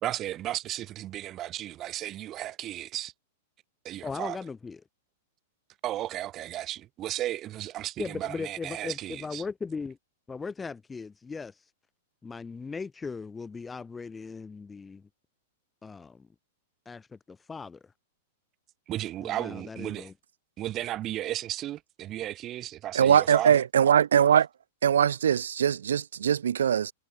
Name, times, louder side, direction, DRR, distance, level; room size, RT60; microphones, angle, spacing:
voice 1, 0.0-3.1 3.8-4.4 5.8-9.4 18.9-20.1 20.6-23.6, right 13 dB, 30° right, 1.2 m, -34 dB
voice 2, 4.0-4.8 8.0-10.0 10.3-11.7 12.2-15.1 15.8-16.3 16.8-17.9 19.2-20.1, left 4 dB, 10° left, 1.7 m, -38 dB
voice 3, 22.9-24.5 24.8-26.9, right 8 dB, 90° right, 0.7 m, -22 dB
hypercardioid pair, 135°, 0 cm